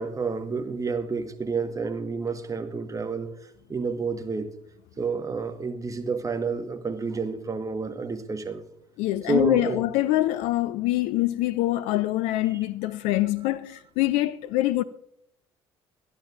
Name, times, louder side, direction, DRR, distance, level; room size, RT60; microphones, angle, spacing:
voice 1, 0.0-3.3 3.7-4.5 5.0-8.6 9.3-9.8, right 4 dB, 25° right, 1.3 m, -29 dB
voice 2, 9.0-14.8, left 16 dB, 60° left, 0.4 m, -24 dB
24.0 x 10.5 x 2.5 m
figure-of-eight pair, 50°, 14 cm